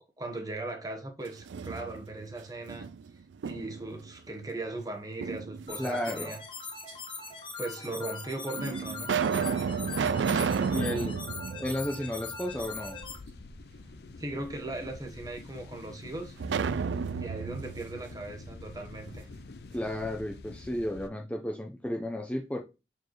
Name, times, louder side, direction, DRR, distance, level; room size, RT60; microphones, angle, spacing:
voice 1, 0.2-2.9 3.4-6.4 7.6-9.1 14.2-16.4 17.2-19.3, right 2 dB, 20° right, 1.1 m, -38 dB
sound 1, 1.3-2.2 2.7-3.9 5.2-6.0 6.9-7.0 7.9-8.0 8.5-12.6 13.0-13.1 16.4-19.2, right 6 dB, 85° right, 0.4 m, -32 dB
sound 2, 5.7-13.2, left 5 dB, 25° left, 1.2 m, -41 dB
voice 2, 5.8-6.4 10.7-11.2 11.6-13.0 19.7-22.6, left 1 dB, 10° left, 0.7 m, -33 dB
sound 3, 12.5-21.1, left 3 dB, 60° left, 0.5 m, -47 dB
6.8 x 4.6 x 3.1 m
head